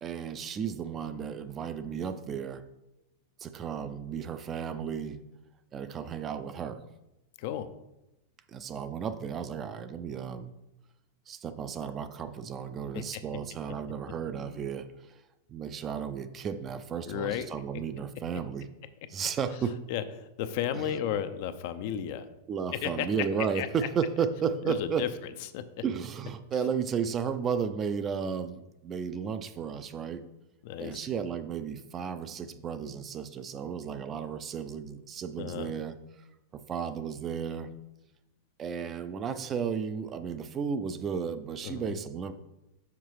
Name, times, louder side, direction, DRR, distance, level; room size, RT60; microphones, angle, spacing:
voice 1, 0.0-2.6 3.4-5.2 5.7-6.8 8.5-10.5 11.3-15.2 15.5-18.7 19.1-19.8 22.5-25.1 25.8-30.2 30.8-36.0 36.5-37.7 38.6-42.3, right 7 dB, 30° right, 11 dB, 0.5 m, -33 dB
voice 2, 7.4-7.7 12.9-13.2 17.1-17.5 19.9-22.2 22.8-23.1 23.5-23.7 24.6-25.1 25.5-25.6 30.6-31.1 35.4-35.7 41.6-42.0, left 10 dB, 60° left, 11 dB, 0.5 m, -33 dB
5.9 x 4.5 x 4.8 m, 0.93 s
hypercardioid pair, 120°, 0 cm